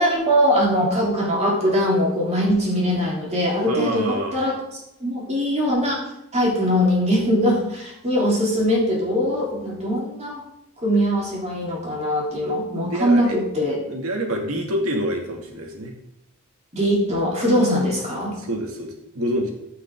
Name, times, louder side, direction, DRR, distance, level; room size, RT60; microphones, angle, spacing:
voice 1, 0.0-6.0 6.3-10.4 10.8-13.8 16.7-18.4, equal, 30° right, -3 dB, 3.2 m, -21 dB
voice 2, 3.7-4.4 12.8-13.4 13.9-15.9 18.4-19.5, equal, 80° right, 2 dB, 2.2 m, -27 dB
14.5 x 5.9 x 3.6 m, 0.83 s
head